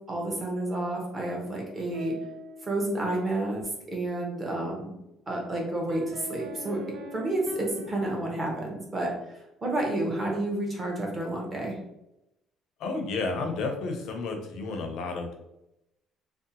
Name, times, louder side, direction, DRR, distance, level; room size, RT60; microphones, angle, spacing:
voice 1, 0.1-2.2 2.6-4.9 5.3-6.8 7.1-11.8, right 1 dB, 25° right, -1 dB, 0.7 m, -30 dB
sound 1, 1.7-3.4 5.9-9.1, right 1 dB, 60° right, 0.4 m, -43 dB
voice 2, 12.8-15.3, left 3 dB, 65° left, 4 dB, 0.5 m, -31 dB
2.6 x 2.1 x 2.6 m, 0.87 s
cardioid pair, 160°, 0 cm